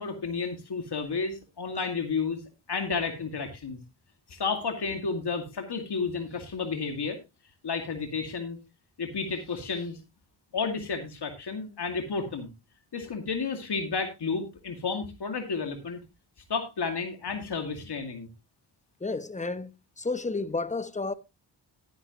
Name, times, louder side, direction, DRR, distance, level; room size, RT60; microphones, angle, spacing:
voice 1, 0.0-2.4 2.7-3.8 4.3-7.2 7.6-8.6 9.0-10.0 10.5-12.5 12.9-16.0 16.5-18.3, left 4 dB, 65° left, 2.3 m, -31 dB
voice 2, 19.0-19.7 20.0-21.1, left 3 dB, 15° left, 1.0 m, -31 dB
12.0 x 10.0 x 3.0 m
cardioid pair, 60°, 44 cm